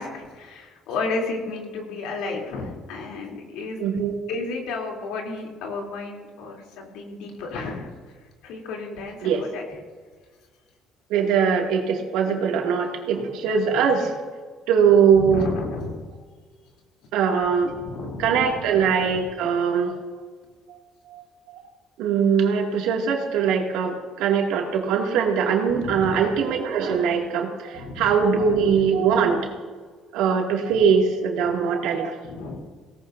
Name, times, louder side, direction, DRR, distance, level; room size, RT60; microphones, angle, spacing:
voice 1, 0.0-3.8 4.3-7.9 8.4-9.6 15.1-16.0 17.7-18.6 25.7-26.3 27.7-28.6 32.2-32.6, left 3 dB, 90° left, 0 dB, 3.3 m, -32 dB
voice 2, 3.8-4.1 9.2-9.4 11.1-14.1 14.7-15.5 17.1-17.7 18.2-20.0 21.1-21.6 22.0-29.5 30.1-32.1, right 6 dB, 90° right, 1 dB, 2.3 m, -21 dB
18.5 x 17.5 x 2.7 m, 1.5 s
cardioid pair, 115°, 0 cm